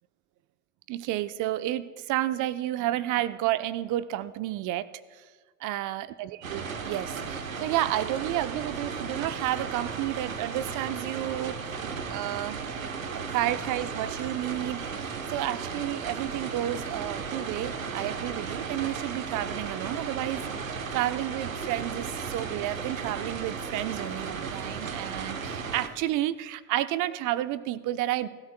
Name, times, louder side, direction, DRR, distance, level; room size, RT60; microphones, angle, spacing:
voice 1, 0.9-5.2 5.6-11.6 12.1-12.6 13.1-28.3, right 14 dB, 50° right, 13 dB, 0.8 m, -31 dB
sound 1, 6.4-25.9, right 5 dB, 90° right, 1.0 m, -35 dB
29.5 x 13.0 x 2.2 m, 1.5 s
hypercardioid pair, 65°, 39 cm